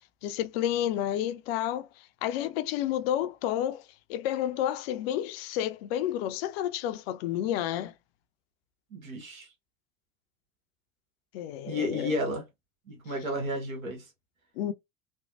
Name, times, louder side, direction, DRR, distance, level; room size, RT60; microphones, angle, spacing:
voice 1, 0.2-1.9 2.2-7.9 11.3-12.1 14.6-14.7, left 11 dB, 50° left, 0.4 m, -30 dB
voice 2, 8.9-9.5 11.7-12.5 12.9-14.1, left 1 dB, 80° right, 1.2 m, -32 dB
3.2 x 2.0 x 2.6 m
figure-of-eight pair, 75°, 41 cm